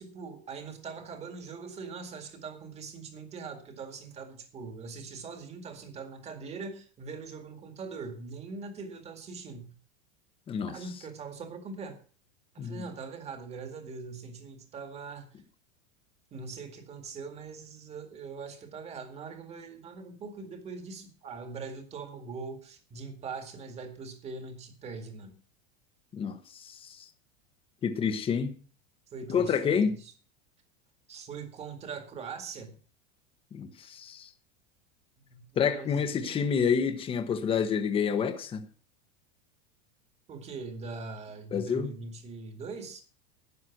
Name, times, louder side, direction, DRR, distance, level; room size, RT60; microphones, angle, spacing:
voice 1, 0.0-9.8 10.7-12.0 12.5-15.3 16.3-25.3 29.1-30.1 31.1-32.8 35.3-36.5 40.3-43.0, right 4 dB, 20° right, 2.0 m, -42 dB
voice 2, 26.1-27.1 27.8-28.6 29.3-29.9 33.5-34.3 35.6-38.6 41.5-41.9, left 6 dB, 15° left, 1.1 m, -28 dB
12.5 x 9.5 x 6.0 m
supercardioid pair, 170°, 32 cm